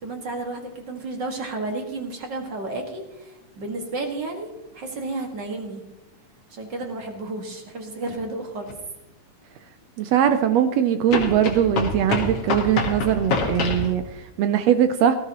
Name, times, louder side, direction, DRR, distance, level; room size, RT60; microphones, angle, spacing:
voice 1, 0.0-4.5 4.7-5.8 6.5-8.7, right 2 dB, 40° right, 3 dB, 2.0 m, -32 dB
sound 1, 8.7-8.8 11.1-13.9, left 4 dB, 55° left, 2.2 m, -26 dB
voice 2, 10.0-15.2, right 9 dB, 80° right, 9 dB, 1.5 m, -21 dB
18.5 x 14.0 x 2.9 m, 0.98 s
omnidirectional pair, 3.6 m